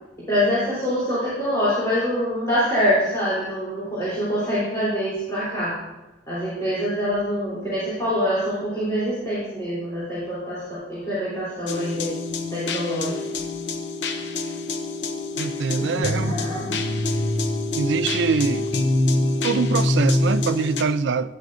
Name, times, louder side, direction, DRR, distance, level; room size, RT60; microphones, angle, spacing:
voice 1, 0.3-5.8 6.3-12.1 12.5-13.2 15.7-16.8, equal, 20° left, 3.3 m, -25 dB
sound 1, 11.7-20.8, left 2 dB, 70° left, 0.7 m, -25 dB
voice 2, 15.4-16.3 17.8-18.7 19.2-21.4, right 5 dB, 75° right, 0.4 m, -24 dB
11.5 x 8.2 x 2.6 m
head